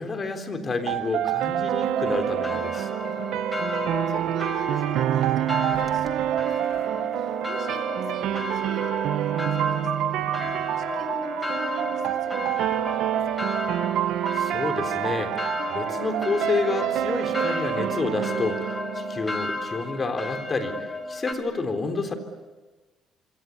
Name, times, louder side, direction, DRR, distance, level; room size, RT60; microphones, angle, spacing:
voice 1, 0.0-2.9 14.4-15.4 15.7-20.8 21.1-22.1, left 3 dB, 30° left, 7 dB, 3.7 m, -29 dB
sound 1, 0.9-19.8, right 11 dB, 80° right, 1.1 m, -27 dB
sound 2, 2.0-21.3, left 2 dB, 15° left, 2.8 m, -34 dB
voice 2, 3.1-13.6, right 4 dB, 55° right, 10 dB, 4.5 m, -43 dB
26.5 x 25.5 x 8.4 m, 1.2 s
cardioid pair, 125°, 0 cm